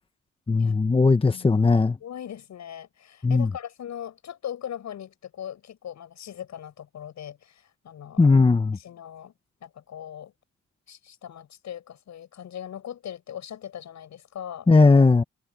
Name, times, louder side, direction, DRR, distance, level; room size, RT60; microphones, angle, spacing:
voice 1, 0.5-2.0 3.2-3.5 8.2-8.8 14.7-15.2, left 4 dB, 20° left, 1.0 m, -18 dB
voice 2, 2.0-8.3 8.7-9.3 9.6-10.3 10.9-14.7, left 10 dB, 65° left, 7.9 m, -39 dB
cardioid pair, 90°, 30 cm